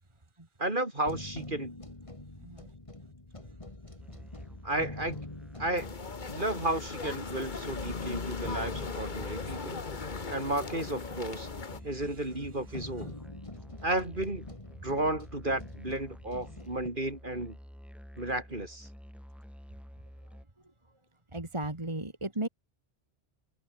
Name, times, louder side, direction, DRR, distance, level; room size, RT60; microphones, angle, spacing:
voice 1, 0.6-1.7 4.6-5.2 5.6-5.9 6.3-9.8 10.3-11.5 11.8-13.1 13.8-14.5 14.8-17.6 18.2-18.9, right 1 dB, 50° right, 5.2 m, -33 dB
sound 1, 1.1-16.9, left 2 dB, 30° left, 2.6 m, -46 dB
voice 2, 2.4-2.7 3.5-3.6 11.7-13.1 20.2-20.4 20.6-20.9 21.3-22.5, right 1 dB, 25° right, 2.5 m, -38 dB
Musical instrument, 4.0-20.5, equal, ahead, 4.5 m, -50 dB
sound 2, 5.8-11.8, left 4 dB, 45° left, 1.6 m, -38 dB
omnidirectional pair, 1.1 m